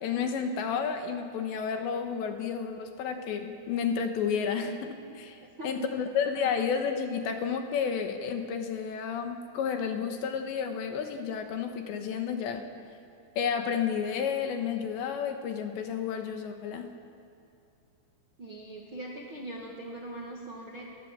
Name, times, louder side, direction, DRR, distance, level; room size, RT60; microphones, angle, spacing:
voice 1, 0.0-12.6 13.4-16.9, left 6 dB, 70° left, 5 dB, 3.2 m, -31 dB
voice 2, 5.6-6.0 18.4-20.8, right 1 dB, 50° right, -1 dB, 1.5 m, -41 dB
29.5 x 19.0 x 7.6 m, 2.6 s
omnidirectional pair, 5.8 m